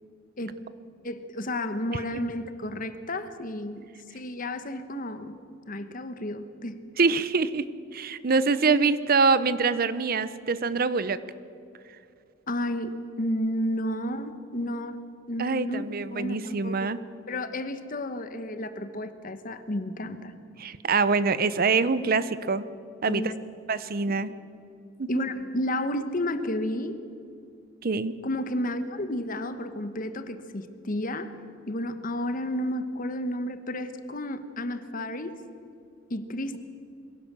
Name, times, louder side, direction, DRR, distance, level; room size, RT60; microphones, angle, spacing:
voice 1, 1.0-3.9 4.1-5.4 5.7-6.8 12.5-15.0 15.3-15.8 16.1-16.9 17.3-20.4 23.1-23.3 25.1-27.0 28.2-31.3 31.7-35.4 36.1-36.6, left 1 dB, 45° left, 10 dB, 1.2 m, -32 dB
voice 2, 7.0-7.7 7.9-11.2 15.4-17.0 20.6-22.6 23.0-23.3 23.7-24.3 25.0-25.2 27.8-28.1, right 4 dB, 50° right, 15 dB, 0.7 m, -24 dB
22.5 x 16.5 x 7.5 m, 2.4 s
head